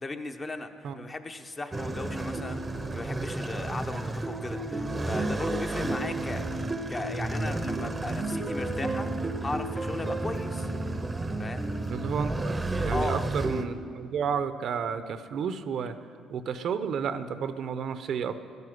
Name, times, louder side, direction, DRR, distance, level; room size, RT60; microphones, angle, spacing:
voice 1, 0.0-0.7 0.9-6.4 6.9-9.1 9.4-10.7 11.4-11.7 12.9-13.2, left 2 dB, 25° left, 6 dB, 0.9 m, -37 dB
sound 1, 1.7-13.7, right 2 dB, 15° right, 0.8 m, -31 dB
voice 2, 11.9-16.0 16.3-18.4, right 6 dB, 60° right, 11 dB, 0.7 m, -32 dB
13.0 x 11.0 x 7.8 m, 2.1 s
cardioid pair, 115°, 0 cm